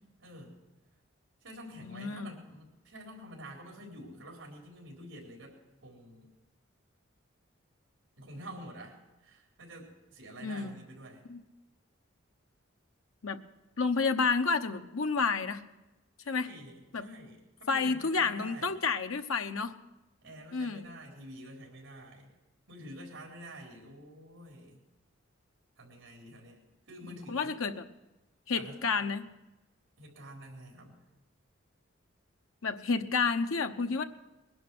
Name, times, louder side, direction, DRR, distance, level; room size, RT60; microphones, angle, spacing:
voice 1, 0.2-0.5 1.4-6.3 8.2-11.3 16.2-18.8 20.2-22.3 22.7-24.8 25.8-27.6 28.5-28.8 30.0-31.0, equal, 75° right, -2 dB, 4.2 m, -48 dB
voice 2, 1.8-2.3 10.4-10.8 11.3-11.4 13.2-13.4 13.8-15.6 16.3-16.5 16.9-17.0 17.7-19.8 20.5-20.9 27.3-27.8 28.5-29.3 32.6-34.0, left 4 dB, 85° left, 7 dB, 1.0 m, -30 dB
20.5 x 11.0 x 6.2 m, 1.0 s
head